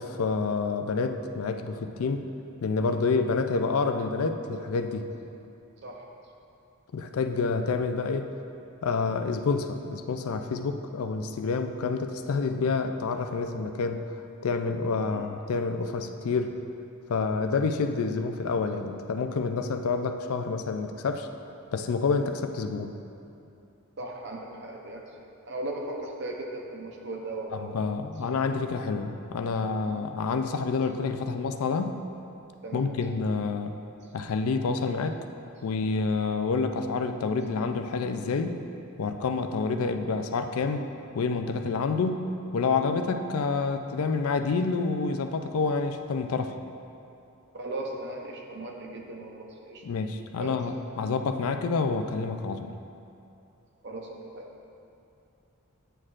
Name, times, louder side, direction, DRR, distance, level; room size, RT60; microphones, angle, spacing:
voice 1, 0.0-2.2 2.6-5.1 6.9-8.3 8.8-14.0 14.4-16.5 17.1-21.3 21.7-22.9 27.5-32.0 32.7-33.7 34.1-35.2 35.6-38.6 39.0-40.9 41.1-42.2 42.5-46.5 49.8-52.7, left 4 dB, 75° left, 7 dB, 0.4 m, -28 dB
voice 2, 24.0-25.1 25.5-27.8 29.9-30.0 32.6-32.9 47.5-49.8 50.4-50.6 53.8-54.1 54.3-54.4, right 2 dB, 50° right, 0 dB, 0.7 m, -37 dB
8.9 x 6.4 x 2.5 m, 2.7 s
head